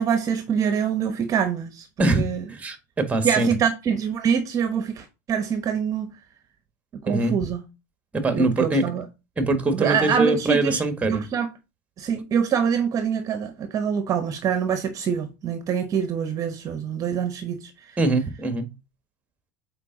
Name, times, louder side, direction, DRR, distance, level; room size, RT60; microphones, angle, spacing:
voice 1, 0.0-1.9 2.2-2.4 3.2-6.1 7.0-7.6 8.3-9.0 9.7-10.8 11.1-11.5 12.0-18.0, right 7 dB, 35° right, 1.0 m, -25 dB
voice 2, 2.0-3.5 7.1-7.4 8.1-8.9 9.4-11.2 18.0-18.7, right 2 dB, 15° right, 1.6 m, -23 dB
7.3 x 4.6 x 3.9 m
supercardioid pair, 110°, 9 cm